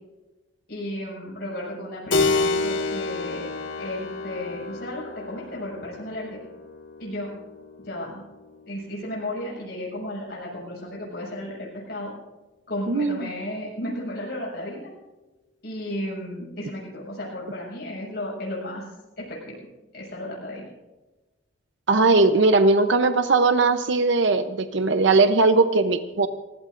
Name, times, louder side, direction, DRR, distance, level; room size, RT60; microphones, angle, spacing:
voice 1, 0.7-3.5 3.8-6.4 7.0-7.3 7.8-8.2 8.7-12.1 12.7-14.9 15.6-18.8 19.2-19.6 19.9-20.7, left 1 dB, 55° left, -4 dB, 6.3 m, -34 dB
Keyboard (musical), 2.1-10.3, left 3 dB, 80° left, 2.0 m, -30 dB
voice 2, 12.9-13.3 21.9-26.3, right 3 dB, 70° right, 9 dB, 0.8 m, -19 dB
29.5 x 16.0 x 2.6 m, 1.1 s
head